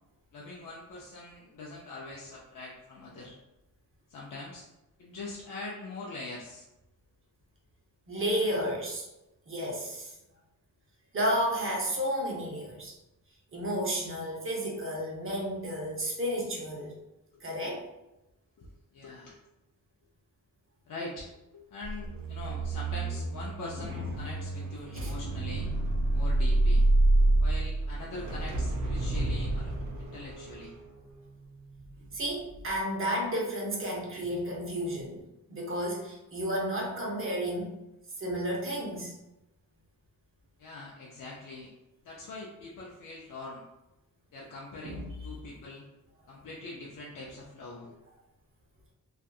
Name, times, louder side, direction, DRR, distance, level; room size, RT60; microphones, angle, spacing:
voice 1, 0.3-3.4 4.1-4.7 5.0-6.6 17.3-17.4 18.9-19.4 20.9-25.7 26.1-26.9 27.4-29.7 30.0-30.7 40.6-41.7 42.0-43.6 44.3-45.9 46.3-48.0, left 2 dB, 65° left, -4 dB, 0.5 m, -43 dB
voice 2, 8.1-9.1 9.5-10.1 11.1-12.9 13.5-16.9 17.4-17.8 23.9-24.3 24.9-25.1 32.1-35.2 35.5-37.7 38.2-39.1 44.8-45.1, equal, 35° right, -2 dB, 0.7 m, -32 dB
sound 1, 21.8-32.1 32.5-32.8, right 2 dB, 70° right, 0.6 m, -28 dB
2.6 x 2.4 x 2.3 m, 0.94 s
wide cardioid pair, 110°, 35 cm